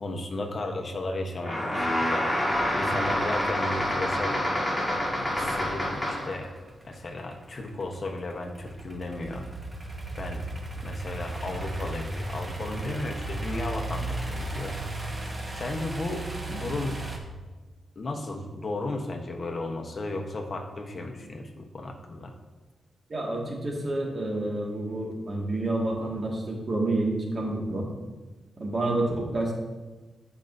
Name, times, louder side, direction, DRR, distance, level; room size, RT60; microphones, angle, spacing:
voice 1, 0.0-2.3 2.7-4.4 5.3-6.5 6.8-9.5 10.2-10.4 10.8-15.0 15.5-17.0 18.0-22.3, left 2 dB, 45° left, 4 dB, 1.0 m, -34 dB
sound 1, 1.4-6.4, left 1 dB, 10° left, 1.9 m, -27 dB
sound 2, 2.7-17.2, right 2 dB, 25° right, 1.3 m, -36 dB
voice 2, 23.1-27.9 28.6-29.5, right 2 dB, 45° right, -1 dB, 1.9 m, -29 dB
14.5 x 5.3 x 2.7 m, 1.2 s
cardioid pair, 90°, 0 cm